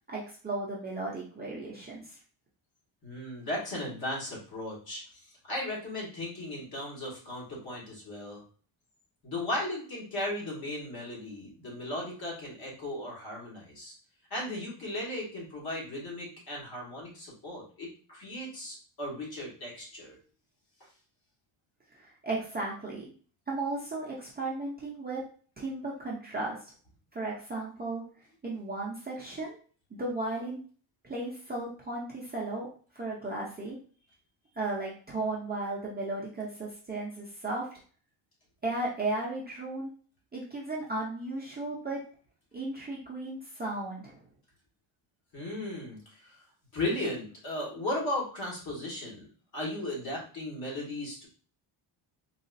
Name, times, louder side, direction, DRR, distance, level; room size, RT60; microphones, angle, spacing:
voice 1, 0.1-2.2 21.9-23.0 23.5-25.2 25.6-26.7 27.1-28.0 28.4-29.6 29.9-30.6 31.0-32.7 32.9-33.8 34.6-37.7 38.6-39.9 40.3-42.0 42.5-44.2, right 2 dB, 20° right, -5 dB, 0.6 m, -35 dB
voice 2, 3.0-8.4 9.2-13.9 14.3-20.2 45.3-46.4 46.7-49.3 49.5-51.3, left 1 dB, 50° left, -4 dB, 1.5 m, -36 dB
3.9 x 2.4 x 2.5 m, 0.42 s
cardioid pair, 160°, 48 cm